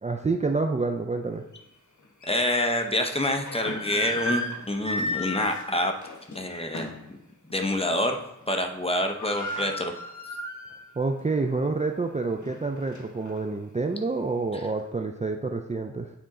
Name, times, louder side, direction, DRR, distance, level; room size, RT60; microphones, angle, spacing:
voice 1, 0.0-1.4 11.0-16.1, right 3 dB, 25° right, 4 dB, 0.4 m, -28 dB
sound 1, 1.5-1.6 2.2-2.3 3.2-7.1 7.5-7.7 8.0-8.4 8.7-8.8 9.0-10.9 11.3-11.4 12.1-13.4, left 1 dB, 75° left, 1.2 m, -34 dB
voice 2, 2.3-5.9 6.3-7.2 7.5-9.9, left 1 dB, 20° left, 4 dB, 0.8 m, -27 dB
9.2 x 4.3 x 3.7 m, 0.86 s
wide cardioid pair, 75°, 30 cm